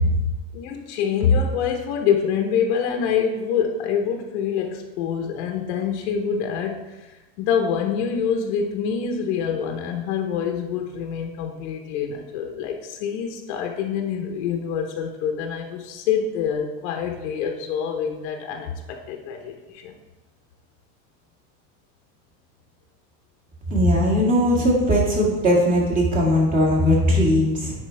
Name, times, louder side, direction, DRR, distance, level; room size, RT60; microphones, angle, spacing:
voice 1, 0.5-19.9, left 7 dB, 85° left, 3 dB, 1.0 m, -26 dB
voice 2, 23.7-27.7, equal, 25° right, -4 dB, 1.9 m, -19 dB
9.8 x 4.6 x 3.4 m, 1.1 s
cardioid pair, 165°, 34 cm